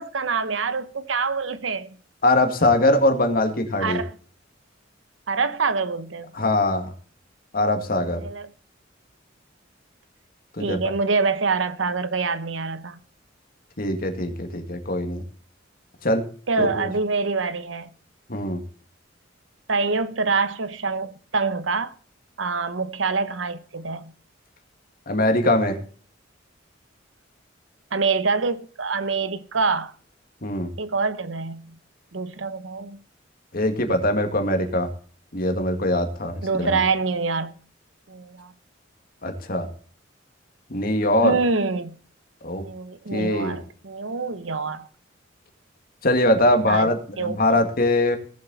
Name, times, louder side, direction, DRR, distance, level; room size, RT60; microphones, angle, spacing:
voice 1, 0.0-2.0 3.8-4.1 5.3-6.3 8.1-8.5 10.6-13.0 16.5-17.9 19.7-21.9 22.4-24.1 27.9-29.9 30.8-31.8 32.1-33.0 36.4-37.5 38.1-38.5 41.2-42.0 42.6-44.9 46.7-46.9 47.2-47.4, right 4 dB, 80° right, 1.0 m, -25 dB
voice 2, 2.2-4.0 6.3-6.9 7.5-8.2 10.5-10.8 13.8-15.2 16.0-16.3 16.6-16.9 18.3-18.6 25.1-25.8 30.4-30.7 33.5-34.9 35.3-36.8 39.2-39.7 40.7-41.4 42.4-42.6 43.1-43.6 46.0-48.2, left 1 dB, 50° left, 2.0 m, -22 dB
18.0 x 7.5 x 4.1 m
head